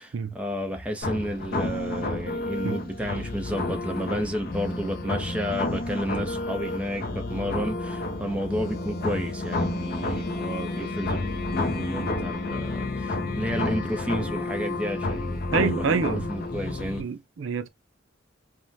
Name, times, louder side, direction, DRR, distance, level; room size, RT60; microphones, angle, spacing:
voice 1, 0.0-17.0, equal, 5° right, 0.5 m, -31 dB
sound 1, 1.0-17.0, left 2 dB, 50° left, 0.6 m, -30 dB
voice 2, 15.5-16.3 17.0-17.7, right 5 dB, 65° right, 0.4 m, -27 dB
3.3 x 2.1 x 2.6 m
head